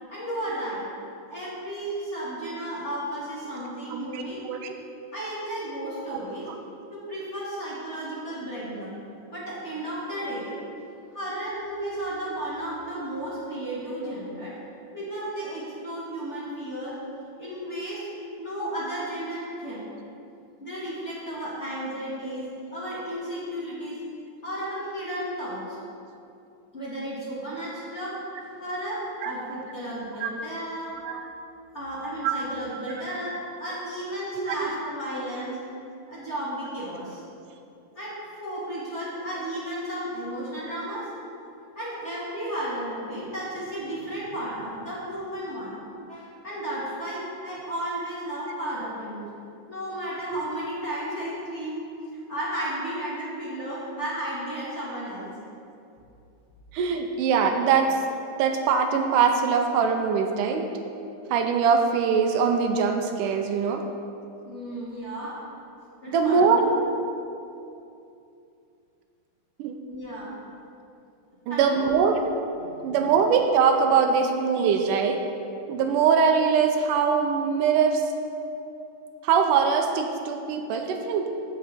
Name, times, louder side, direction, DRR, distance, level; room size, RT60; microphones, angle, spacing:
voice 1, 0.1-0.8 1.3-4.4 5.1-6.5 6.9-9.0 9.3-10.5 11.1-14.5 14.9-16.9 17.4-18.1 18.4-19.9 20.6-24.0 24.4-25.8 26.7-30.9 31.7-35.6 36.1-37.2 38.0-41.1 41.7-45.8 46.1-49.2 49.7-55.3 64.4-65.3 66.0-66.7 69.9-70.3 71.5-71.9 72.5-73.2, right 1 dB, 25° left, -9 dB, 2.3 m, -33 dB
voice 2, 3.9-4.8 6.1-6.2 29.2-29.3 30.2-30.3 31.0-31.3 32.2-32.3 34.4-34.6 50.3-50.4 56.7-58.0 58.4-60.7 61.3-63.8 66.1-66.8 69.6-69.7 71.5-72.2 72.8-75.2 75.7-78.0 79.2-81.3, right 6 dB, 85° right, 4 dB, 2.2 m, -22 dB
15.0 x 6.3 x 4.3 m, 2.7 s
omnidirectional pair, 3.7 m